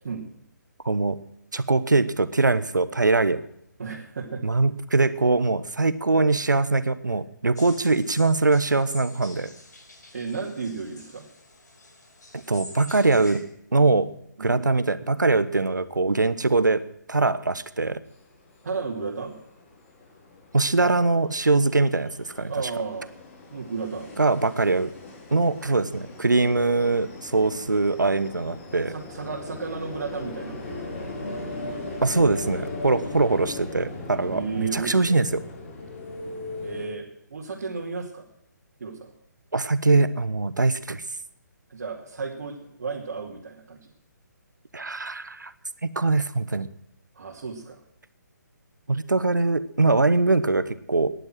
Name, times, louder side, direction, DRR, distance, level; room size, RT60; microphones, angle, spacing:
voice 1, 0.8-1.2 1.5-3.4 4.4-9.5 12.5-13.4 13.7-14.1 14.4-16.8 17.1-18.0 20.5-22.5 24.2-24.9 25.3-28.9 32.0-35.4 39.5-41.0 44.7-45.5 45.8-46.7 48.9-51.1, right 3 dB, 75° right, 14 dB, 1.2 m, -22 dB
voice 2, 3.8-4.4 10.1-11.2 14.4-14.7 18.6-19.3 22.5-23.1 23.5-24.1 28.9-30.6 33.1-33.5 34.3-35.0 36.6-38.2 38.8-39.1 41.7-43.9 47.2-47.8, right 5 dB, 55° right, -2 dB, 2.7 m, -33 dB
sound 1, 7.6-13.4, left 2 dB, 65° left, 5.2 m, -46 dB
sound 2, 18.2-18.3 18.6-36.9, left 2 dB, 40° left, 3.6 m, -38 dB
17.5 x 11.0 x 6.2 m, 0.76 s
figure-of-eight pair, 135°, 10 cm